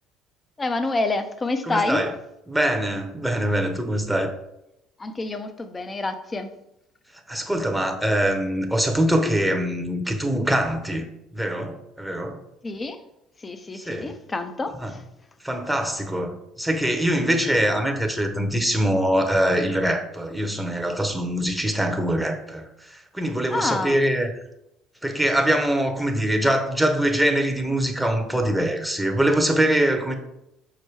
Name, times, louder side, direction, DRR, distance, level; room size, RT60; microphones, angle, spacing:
voice 1, 0.6-2.0 5.0-6.5 12.6-13.0 13.4-15.0 23.5-24.0, left 2 dB, 25° left, 0.7 m, -27 dB
voice 2, 1.7-2.1 2.5-4.3 7.3-11.1 11.3-12.4 13.7-14.2 14.8-15.0 15.4-24.3 25.0-30.2, right 1 dB, ahead, 0.9 m, -23 dB
4.9 x 4.4 x 4.7 m
supercardioid pair, 75°, 0 cm